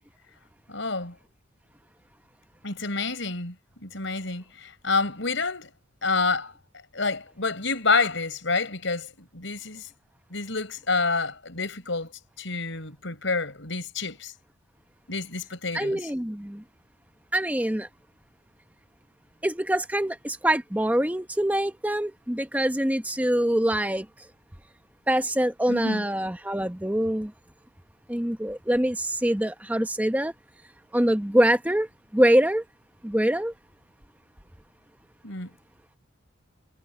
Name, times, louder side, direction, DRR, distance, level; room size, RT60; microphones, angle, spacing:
voice 1, 0.7-1.1 2.6-5.7 6.0-6.5 6.9-9.9 10.3-12.1 12.4-14.3 15.1-16.0 25.7-26.1 35.2-35.5, left 4 dB, 75° left, 4.6 m, -28 dB
voice 2, 15.7-16.6 17.3-17.9 19.4-24.1 25.1-27.3 28.1-30.3 30.9-32.6 33.0-33.5, right 1 dB, 10° right, 0.9 m, -24 dB
head